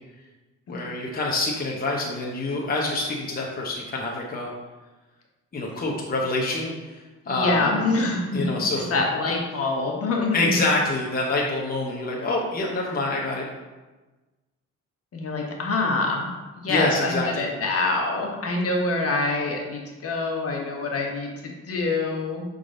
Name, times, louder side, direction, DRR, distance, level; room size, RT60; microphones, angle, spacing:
voice 1, 0.7-4.5 5.5-7.7 8.3-8.9 10.3-13.4 16.7-17.4, left 2 dB, 30° left, -2 dB, 0.9 m, -26 dB
voice 2, 7.2-8.6 8.9-10.6 15.1-22.4, left 3 dB, 50° left, 0 dB, 1.3 m, -26 dB
6.4 x 3.9 x 3.8 m, 1.2 s
cardioid pair, 90°, 30 cm